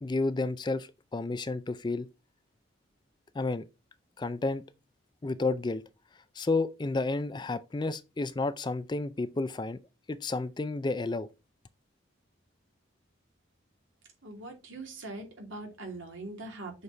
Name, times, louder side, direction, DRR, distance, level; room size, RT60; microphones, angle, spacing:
voice 1, 0.0-2.1 3.3-3.6 4.2-4.6 5.2-5.8 6.4-9.8 10.1-11.3, left 3 dB, 25° left, 0.4 m, -31 dB
voice 2, 14.2-16.8, right 2 dB, 75° right, 2.6 m, -42 dB
6.7 x 4.2 x 4.5 m
head